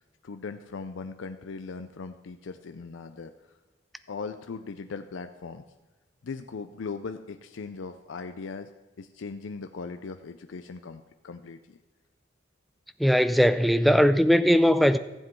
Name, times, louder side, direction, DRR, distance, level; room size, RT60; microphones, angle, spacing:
voice 1, 0.0-3.3 4.1-5.6 6.2-8.7 9.0-11.8, left 4 dB, 85° left, 0.5 m, -39 dB
voice 2, 13.0-15.0, equal, ahead, 0.3 m, -20 dB
14.5 x 7.5 x 4.5 m
head